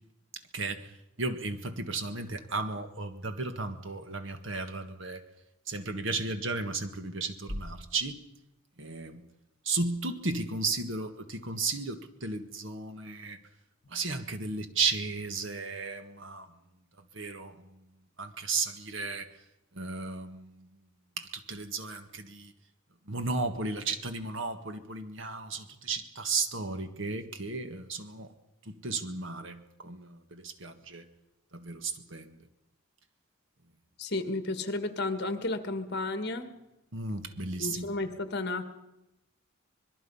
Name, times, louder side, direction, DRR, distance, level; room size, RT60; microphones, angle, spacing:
voice 1, 0.5-0.9 1.2-5.2 5.7-8.2 8.8-9.2 9.6-13.4 13.9-16.5 17.1-17.8 18.2-19.3 19.7-20.7 21.2-22.5 23.1-28.3 28.6-31.0 31.5-32.4 36.9-37.8, right 3 dB, 60° right, 9 dB, 1.7 m, -34 dB
voice 2, 34.0-36.5 37.6-38.7, left 2 dB, 50° left, 9 dB, 1.7 m, -32 dB
25.5 x 21.5 x 5.6 m, 0.92 s
head